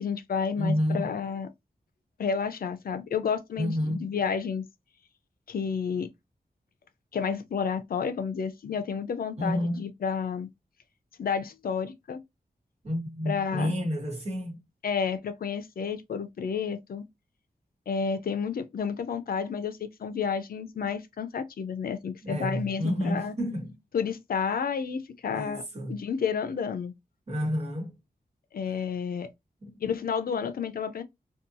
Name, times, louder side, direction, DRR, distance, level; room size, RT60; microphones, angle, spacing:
voice 1, 0.0-1.5 2.2-4.6 5.5-6.1 7.1-10.5 11.2-12.2 13.3-13.7 14.8-17.0 17.9-23.3 23.9-26.9 28.5-29.3 29.8-31.0, left 6 dB, 70° left, 0.4 m, -31 dB
voice 2, 0.6-1.1 3.6-4.0 9.4-9.9 12.8-14.6 22.2-23.7 25.3-26.0 27.3-27.9 29.6-29.8, equal, 45° right, 1.1 m, -30 dB
2.6 x 2.2 x 2.5 m
wide cardioid pair, 120°, 16 cm